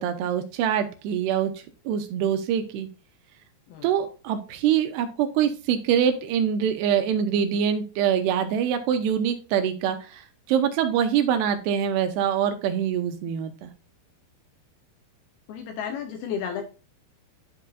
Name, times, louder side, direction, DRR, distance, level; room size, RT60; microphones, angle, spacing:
voice 1, 0.0-2.9 3.8-13.7, right 8 dB, 85° right, 7 dB, 2.6 m, -24 dB
voice 2, 15.5-16.6, left 7 dB, 80° left, 6 dB, 2.3 m, -32 dB
10.5 x 4.7 x 2.6 m, 0.34 s
omnidirectional pair, 5.2 m